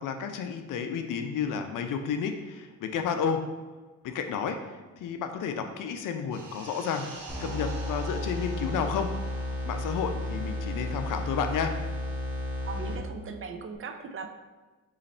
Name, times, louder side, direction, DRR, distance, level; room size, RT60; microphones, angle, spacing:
voice 1, 0.0-3.5 4.0-4.6 5.0-7.1 7.4-9.1 9.6-11.8, left 6 dB, 70° left, 7 dB, 0.6 m, -31 dB
sound 1, 6.3-11.4 11.6-11.8, right 3 dB, 70° right, 1.1 m, -46 dB
sound 2, 7.3-13.3, left 1 dB, 5° right, 1.1 m, -33 dB
voice 2, 12.5-14.3, right 4 dB, 40° right, 6 dB, 0.5 m, -39 dB
4.0 x 3.1 x 4.3 m, 1.3 s
cardioid pair, 95°, 33 cm